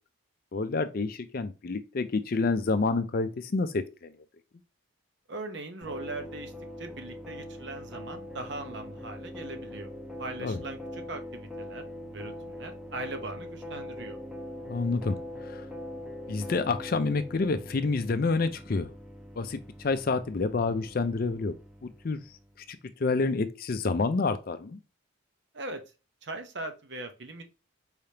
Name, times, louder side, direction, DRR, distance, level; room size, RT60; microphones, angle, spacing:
voice 1, 0.5-4.1 10.4-10.6 14.7-15.6 16.3-18.9 19.4-21.5 21.8-22.2 22.7-24.8, left 3 dB, 45° left, 0.4 m, -28 dB
voice 2, 5.3-6.5 6.8-9.9 10.2-11.8 12.1-14.2 25.5-25.8 26.2-27.4, right 2 dB, 55° right, 0.8 m, -40 dB
sound 1, 5.8-22.6, left 1 dB, 5° right, 0.9 m, -42 dB
4.8 x 3.4 x 2.8 m
head